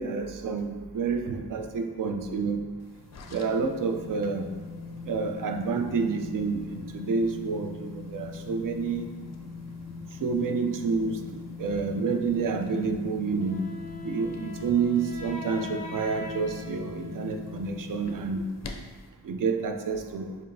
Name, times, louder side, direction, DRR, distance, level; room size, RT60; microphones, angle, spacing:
voice 1, 0.0-2.6 3.3-4.5 5.0-9.1 10.2-13.6 14.0-18.5 19.2-20.4, right 5 dB, 50° right, 6 dB, 0.5 m, -29 dB
sound 1, 2.8-19.1, left 4 dB, 40° left, 0.4 m, -41 dB
Wind instrument woodwind instrument, 13.4-18.2, left 1 dB, 20° left, 0.8 m, -42 dB
4.3 x 2.8 x 2.6 m, 1.4 s
cardioid pair, 55°, 43 cm